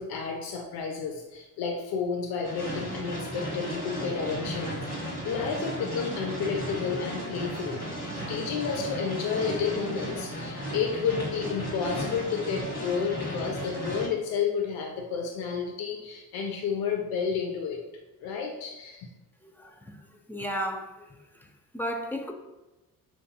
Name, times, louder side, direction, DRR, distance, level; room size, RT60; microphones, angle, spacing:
voice 1, 0.0-4.8 5.2-7.8 8.3-17.8 18.2-19.1, left 6 dB, 55° left, 0.7 m, -31 dB
sound 1, 2.4-14.1, equal, 90° left, 1.4 m, -35 dB
voice 2, 19.4-20.0 20.3-21.1 21.4-21.5 21.7-22.3, equal, 5° left, 0.5 m, -34 dB
5.9 x 2.6 x 2.2 m
hypercardioid pair, 45°, 46 cm